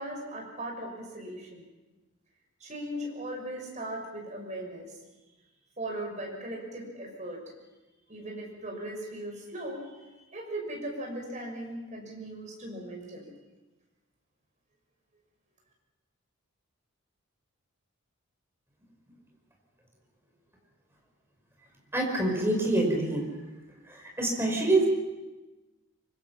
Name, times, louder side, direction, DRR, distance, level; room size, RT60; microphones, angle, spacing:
voice 1, 0.0-1.6 2.6-4.9 5.8-7.4 8.1-13.3, right 1 dB, 35° right, 0 dB, 6.4 m, -38 dB
voice 2, 21.9-23.2 23.9-24.9, right 2 dB, 10° right, 0 dB, 5.1 m, -26 dB
25.0 x 24.0 x 5.9 m, 1.1 s
head